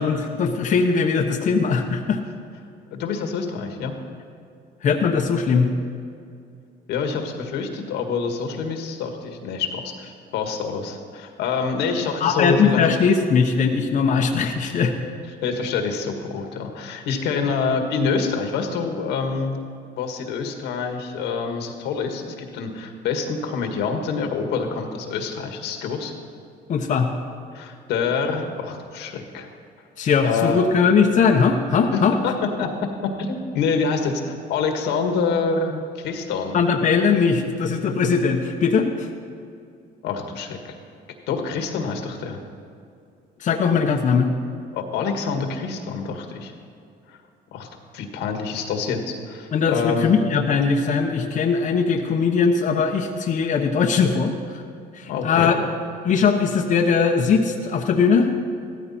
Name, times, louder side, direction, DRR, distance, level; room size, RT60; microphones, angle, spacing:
voice 1, 0.0-2.2 4.8-5.7 12.2-14.9 26.7-27.1 30.0-32.1 36.5-39.1 43.4-44.3 49.5-54.3 55.0-55.6 56.0-58.3, left 5 dB, 45° left, 2 dB, 1.0 m, -20 dB
voice 2, 2.9-3.9 6.9-12.9 15.4-19.6 20.0-26.1 27.5-29.5 30.2-30.6 31.9-32.7 33.2-36.6 40.0-40.8 41.3-42.4 44.7-46.5 47.5-47.7 47.9-50.1 55.1-55.5, left 5 dB, 85° left, 4 dB, 1.7 m, -26 dB
15.5 x 13.5 x 4.3 m, 2.4 s
cardioid pair, 110°, 17 cm